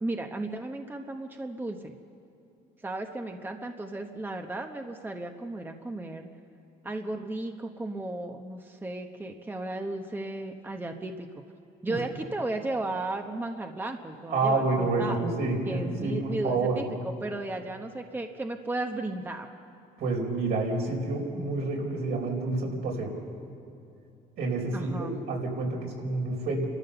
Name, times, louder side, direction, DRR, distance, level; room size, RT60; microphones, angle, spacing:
voice 1, 0.0-1.9 2.8-6.3 6.8-11.3 11.8-15.3 15.6-19.5 24.7-25.1, right 2 dB, 10° right, 4 dB, 1.0 m, -35 dB
voice 2, 14.3-16.8 20.0-23.1 24.4-26.7, right 3 dB, 75° right, 0 dB, 4.5 m, -28 dB
30.0 x 13.5 x 6.9 m, 2.7 s
cardioid pair, 110°, 17 cm